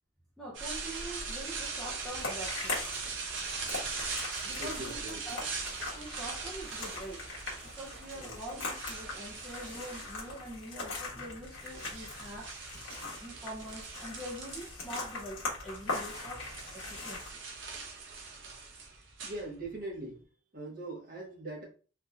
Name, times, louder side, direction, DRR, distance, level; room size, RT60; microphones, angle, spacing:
voice 1, 0.4-2.9 4.4-5.5 5.8-7.3 7.6-12.7 13.2-16.5 16.7-17.2, right 1 dB, ahead, 0.6 m, -44 dB
sound 1, 0.5-10.5 11.2-15.0 15.3-19.9, right 4 dB, 65° right, 0.8 m, -41 dB
sound 2, 2.1-17.3, left 3 dB, 70° left, 1.2 m, -41 dB
voice 2, 4.6-5.2 8.1-8.4 13.3-13.4 19.2-20.2 20.5-21.6, right 2 dB, 45° right, 1.3 m, -41 dB
3.6 x 2.9 x 2.4 m
head